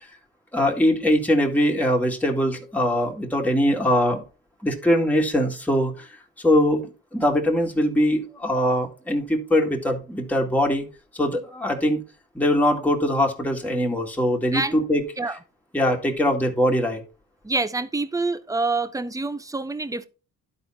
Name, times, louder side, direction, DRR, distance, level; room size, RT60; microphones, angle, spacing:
voice 1, 0.5-4.2 4.6-6.1 6.4-10.8 11.1-12.0 12.3-15.0 15.7-17.0, equal, 5° left, 2.2 m, -22 dB
voice 2, 14.5-14.8 15.2-15.4 17.4-20.0, right 3 dB, 10° right, 0.8 m, -26 dB
11.5 x 4.2 x 4.3 m
cardioid pair, 90°, 30 cm